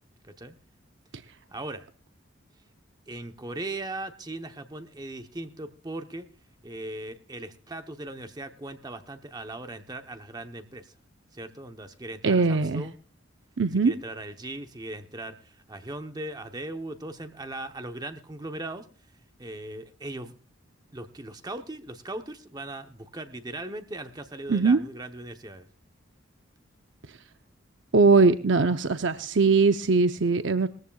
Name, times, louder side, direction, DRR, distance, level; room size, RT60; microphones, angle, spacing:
voice 1, 1.5-1.9 3.1-6.3 6.6-10.9 11.3-13.0 13.8-18.9 19.4-20.3 20.9-25.7, right 2 dB, 20° right, 7 dB, 0.9 m, -38 dB
voice 2, 12.2-12.8 13.6-13.9 24.5-24.8 27.9-30.7, right 4 dB, 70° right, 9 dB, 0.7 m, -21 dB
20.5 x 14.5 x 2.3 m, 0.39 s
head